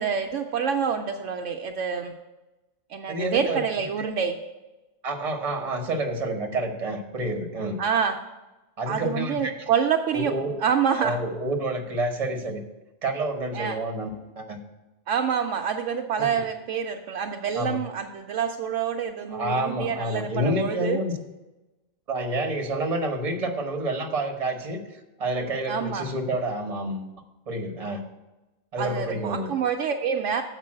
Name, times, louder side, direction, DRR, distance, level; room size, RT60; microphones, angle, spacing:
voice 1, 0.0-2.1 2.9-4.4 7.8-8.1 8.9-10.3 10.6-11.2 13.5-13.8 15.1-21.0 25.7-26.0 28.8-30.4, right 7 dB, 70° right, 4 dB, 0.9 m, -27 dB
voice 2, 3.1-3.6 5.0-7.8 8.8-9.5 10.1-10.6 11.0-12.6 13.0-14.6 16.2-16.3 17.5-17.8 19.3-21.1 22.1-27.1 27.5-28.0 28.7-29.5, right 1 dB, 30° right, 3 dB, 0.9 m, -29 dB
7.4 x 5.2 x 7.4 m, 1.1 s
omnidirectional pair, 1.4 m